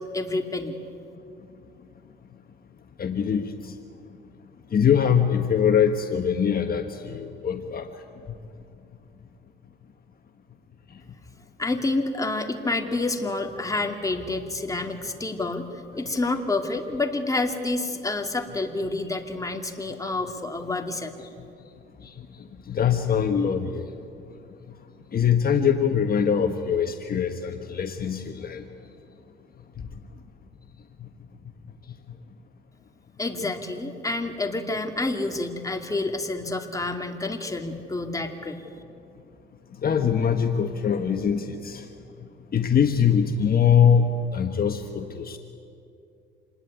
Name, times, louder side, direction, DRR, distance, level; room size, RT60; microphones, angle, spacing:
voice 1, 0.1-0.8 11.6-21.2 33.2-38.6, left 2 dB, 15° left, 4 dB, 2.5 m, -28 dB
voice 2, 3.0-3.7 4.7-7.9 22.0-22.1 22.7-23.9 25.1-28.6 39.8-41.9 42.5-45.4, left 7 dB, 50° left, 5 dB, 1.5 m, -23 dB
27.0 x 20.0 x 9.4 m, 2.6 s
cardioid pair, 90°, 20 cm